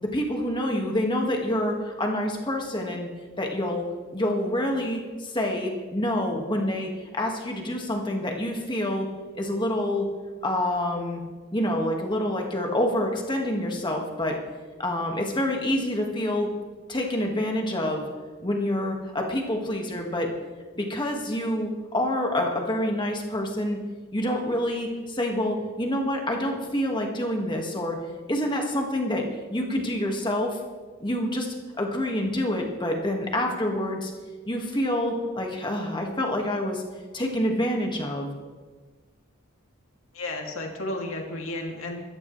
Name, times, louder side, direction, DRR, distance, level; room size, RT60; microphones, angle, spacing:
voice 1, 0.0-3.1 3.4-9.1 9.4-10.1 10.4-11.2 11.5-14.4 14.8-16.5 16.9-18.1 18.4-20.3 20.8-23.8 24.1-28.0 28.3-30.6 31.0-34.1 34.5-36.8 37.1-38.3, left 1 dB, 20° left, 1 dB, 1.8 m, -27 dB
voice 2, 40.1-42.0, left 1 dB, 70° left, 1 dB, 2.7 m, -32 dB
24.0 x 14.0 x 3.3 m, 1.4 s
head